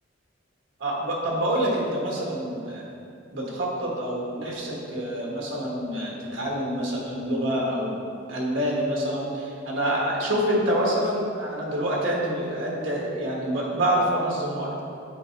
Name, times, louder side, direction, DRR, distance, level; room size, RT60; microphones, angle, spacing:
voice 1, 0.8-2.8 3.3-8.0 8.3-14.8, right 1 dB, 70° right, -3 dB, 1.5 m, -27 dB
7.9 x 4.9 x 3.3 m, 2.6 s
head